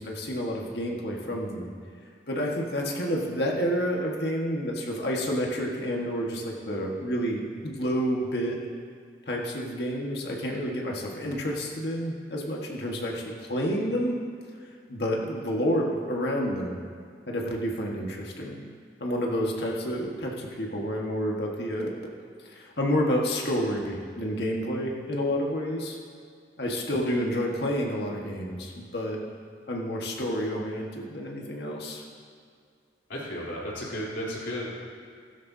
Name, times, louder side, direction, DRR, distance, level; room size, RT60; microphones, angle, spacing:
voice 1, 0.0-1.7 2.3-8.6 9.3-14.1 14.9-16.8 17.3-18.6 19.0-21.9 22.4-26.0 26.6-29.2 29.7-32.0, equal, 65° left, -1 dB, 1.6 m, -29 dB
voice 2, 33.1-34.8, equal, 85° left, -6 dB, 3.6 m, -34 dB
16.0 x 12.5 x 2.8 m, 2.1 s
head